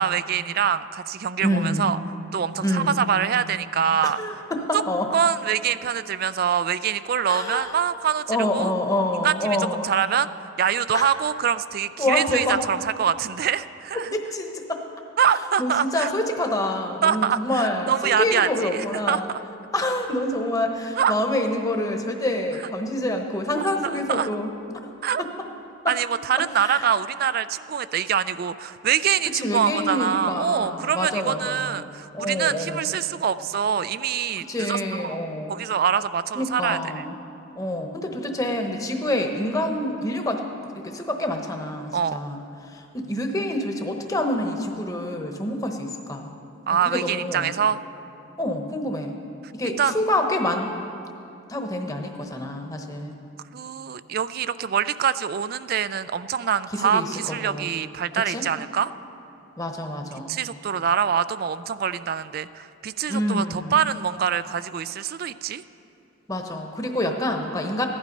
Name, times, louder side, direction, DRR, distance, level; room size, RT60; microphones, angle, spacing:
voice 1, 0.0-2.0 2.3-4.2 4.7-4.8 5.1-8.7 9.2-9.6 9.8-10.3 10.6-14.1 15.2-16.1 17.0-19.4 21.0-21.2 24.1-24.3 25.0-25.2 25.9-35.2 35.5-36.8 41.9-42.2 46.7-47.8 49.8-49.9 53.5-58.9 60.3-65.6, right 8 dB, 50° right, 15 dB, 0.3 m, -24 dB
voice 2, 1.4-1.9 2.6-3.1 4.0-5.1 7.3-7.7 8.3-9.9 10.9-11.1 12.0-12.6 14.1-14.8 15.6-19.3 19.7-24.5 25.2-25.3 25.8-26.0 26.6-26.9 29.3-33.0 34.4-35.6 36.3-37.1 37.5-40.4 40.8-42.4 42.7-46.3 46.8-47.5 48.4-49.1 49.5-50.7 51.5-53.1 56.7-57.7 58.1-58.4 59.6-60.3 63.1-63.7 66.3-67.9, left 1 dB, 20° left, 3 dB, 1.0 m, -27 dB
15.5 x 11.5 x 5.3 m, 2.7 s
head